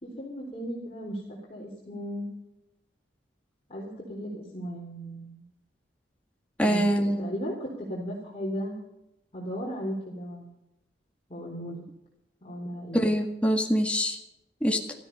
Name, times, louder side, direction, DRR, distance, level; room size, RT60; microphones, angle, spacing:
voice 1, 0.0-2.3 3.7-5.4 6.6-8.7 9.3-10.5 11.3-11.8 12.4-13.0, equal, 35° left, -4 dB, 3.9 m, -36 dB
voice 2, 6.6-7.3 12.9-14.2 14.6-14.8, equal, 5° left, 2 dB, 1.8 m, -24 dB
16.5 x 14.0 x 5.5 m, 0.87 s
head